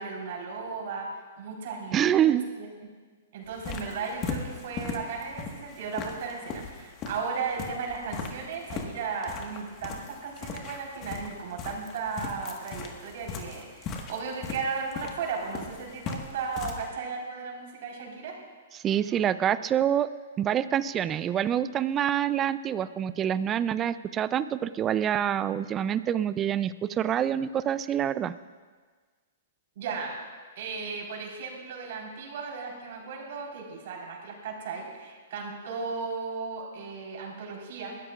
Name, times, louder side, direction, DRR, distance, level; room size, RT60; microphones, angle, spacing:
voice 1, 0.0-2.9 3.3-18.4 29.7-30.2 30.6-38.0, right 5 dB, 60° right, -1 dB, 4.4 m, -35 dB
voice 2, 1.9-2.4 18.8-20.1 20.4-28.3, right 10 dB, 25° right, 15 dB, 0.5 m, -26 dB
sound 1, 3.5-16.9, left 5 dB, 35° left, 1.6 m, -39 dB
21.5 x 13.0 x 2.5 m, 1.5 s
hypercardioid pair, 130°, 0 cm